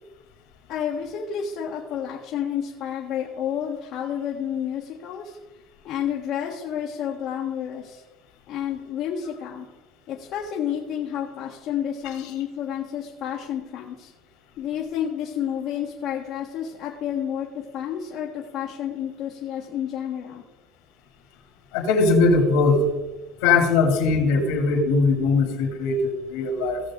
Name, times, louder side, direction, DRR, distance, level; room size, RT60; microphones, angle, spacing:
voice 1, 0.7-5.4 5.8-8.0 8.5-9.7 10.1-14.1 14.6-17.5 17.7-20.4, left 9 dB, 60° left, -3 dB, 1.5 m, -30 dB
voice 2, 21.7-22.8 23.4-26.8, left 3 dB, 80° left, 2 dB, 3.0 m, -20 dB
17.5 x 6.6 x 3.9 m, 1.1 s
supercardioid pair, 110°, 0 cm